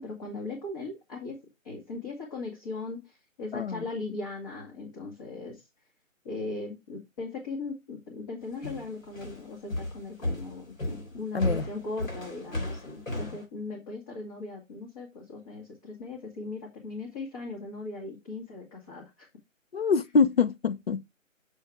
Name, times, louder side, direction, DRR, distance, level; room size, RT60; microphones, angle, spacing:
voice 1, 0.0-5.6 6.2-19.3, left 3 dB, 25° left, 1.8 m, -39 dB
voice 2, 3.5-3.8 11.3-11.6 19.7-21.0, left 5 dB, 50° left, 0.6 m, -25 dB
sound 1, 8.6-13.4, left 1 dB, 75° left, 3.6 m, -34 dB
6.8 x 4.0 x 4.6 m
figure-of-eight pair, 155°, 40 cm